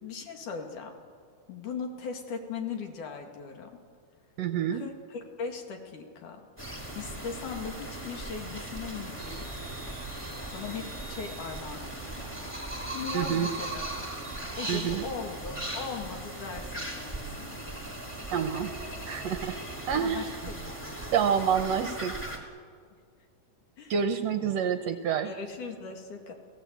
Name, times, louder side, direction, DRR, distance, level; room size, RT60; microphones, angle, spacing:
voice 1, 0.0-1.0 1.5-3.8 4.7-6.5 7.0-9.5 10.5-12.3 12.9-14.1 14.6-17.6 20.0-21.0 23.8-23.9 25.2-26.3, left 5 dB, 75° left, 3 dB, 3.7 m, -39 dB
voice 2, 4.4-4.8 13.1-13.5 14.7-15.0 18.3-18.7 19.1-19.6 19.9-20.2 21.1-22.2 23.9-25.3, right 7 dB, 70° right, 9 dB, 1.7 m, -27 dB
sound 1, 6.6-22.4, right 2 dB, 5° left, 2.3 m, -38 dB
sound 2, 9.2-14.4, right 2 dB, 15° right, 0.8 m, -50 dB
30.0 x 16.5 x 8.3 m, 2.1 s
omnidirectional pair, 3.7 m